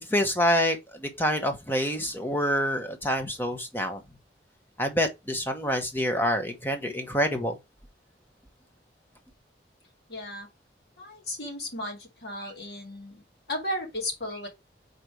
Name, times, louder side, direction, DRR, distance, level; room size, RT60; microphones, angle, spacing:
voice 1, 0.1-4.0 4.8-7.6, equal, 10° left, 1.0 m, -27 dB
voice 2, 10.1-10.5 11.0-13.2 13.5-14.5, left 1 dB, 60° left, 2.1 m, -35 dB
5.2 x 4.0 x 4.6 m
head